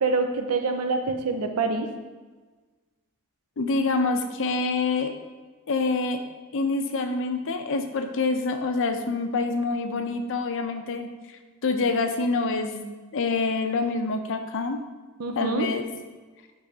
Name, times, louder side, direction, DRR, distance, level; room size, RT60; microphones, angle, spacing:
voice 1, 0.0-1.9 15.2-15.7, right 3 dB, 80° right, 5 dB, 0.6 m, -26 dB
voice 2, 3.6-5.1 5.7-6.2 6.5-11.1 11.6-12.9 13.1-14.8 15.4-15.8, left 3 dB, 60° left, 6 dB, 0.6 m, -26 dB
10.0 x 3.4 x 2.8 m, 1.3 s
head